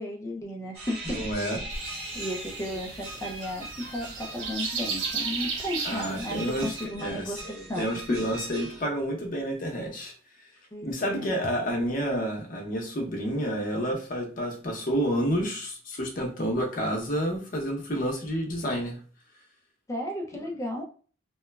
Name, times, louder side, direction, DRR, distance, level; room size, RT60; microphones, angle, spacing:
voice 1, 0.0-1.6 2.1-8.2 10.7-11.3 19.9-20.9, left 1 dB, 15° left, 1 dB, 0.4 m, -34 dB
sound 1, 0.7-8.8, right 2 dB, 60° right, 1.4 m, -40 dB
voice 2, 1.0-1.6 5.8-10.1 10.8-19.0 20.3-20.4, equal, 50° left, 1 dB, 0.7 m, -29 dB
sound 2, 1.7-6.8, right 5 dB, 85° right, 0.6 m, -35 dB
2.9 x 2.2 x 2.2 m, 0.41 s
head